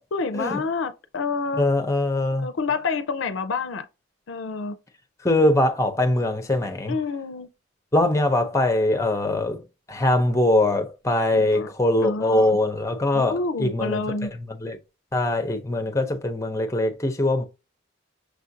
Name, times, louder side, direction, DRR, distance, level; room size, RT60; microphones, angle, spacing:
voice 1, 0.1-1.7 2.3-3.9 4.3-4.8 6.9-7.5 11.3-11.7 12.0-12.6 13.1-14.4, left 4 dB, 75° left, 0.4 m, -28 dB
voice 2, 1.6-2.5 5.2-6.9 7.9-9.6 9.9-14.0 14.6-14.8 15.1-17.4, left 1 dB, 15° left, 0.6 m, -22 dB
6.2 x 2.5 x 2.7 m
head